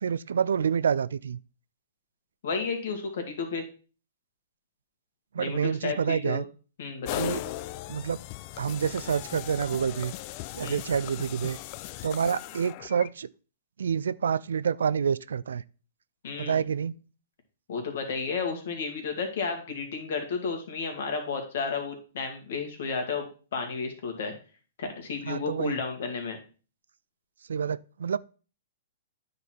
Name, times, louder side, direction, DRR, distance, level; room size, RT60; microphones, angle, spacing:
voice 1, 0.0-1.4 5.3-6.4 7.2-7.4 7.9-8.2 8.6-10.1 10.5-11.6 12.0-13.3 13.8-15.6 16.4-16.9 25.3-25.8 27.5-28.2, right 7 dB, 80° right, 0.3 m, -28 dB
voice 2, 2.4-3.6 5.4-6.4 6.8-7.3 10.6-10.8 16.2-16.6 17.7-24.3 24.8-26.4, left 5 dB, 65° left, 2.1 m, -32 dB
sound 1, 7.1-13.1, left 16 dB, 45° left, 0.3 m, -38 dB
9.5 x 4.1 x 4.4 m
hypercardioid pair, 120°, 0 cm